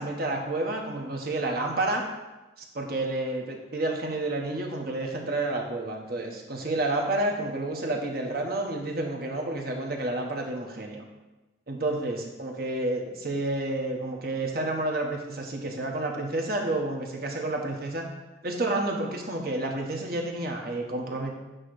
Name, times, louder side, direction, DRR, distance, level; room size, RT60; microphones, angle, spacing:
voice 1, 0.0-2.0 2.6-11.0 11.7-18.1 18.4-21.3, right 2 dB, 55° right, 1 dB, 1.2 m, -30 dB
8.9 x 3.2 x 6.4 m, 1.1 s
head